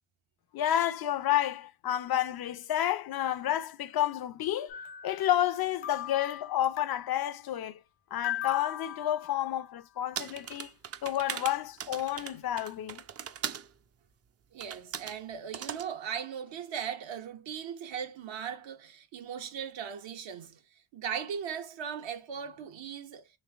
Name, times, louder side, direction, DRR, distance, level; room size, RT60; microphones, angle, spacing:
voice 1, 0.5-4.8 5.0-7.8 8.1-10.7 11.0-13.0, left 12 dB, 55° left, 0.5 m, -30 dB
sound 1, 4.7-5.6 5.8-7.2 8.2-9.8, left 11 dB, 80° left, 1.1 m, -39 dB
sound 2, 10.2-13.7 14.6-15.2 15.5-15.9, right 8 dB, 35° right, 0.4 m, -39 dB
voice 2, 14.5-20.6 20.9-23.3, right 8 dB, 70° right, 1.0 m, -38 dB
3.2 x 3.2 x 2.3 m
cardioid pair, 70°, 47 cm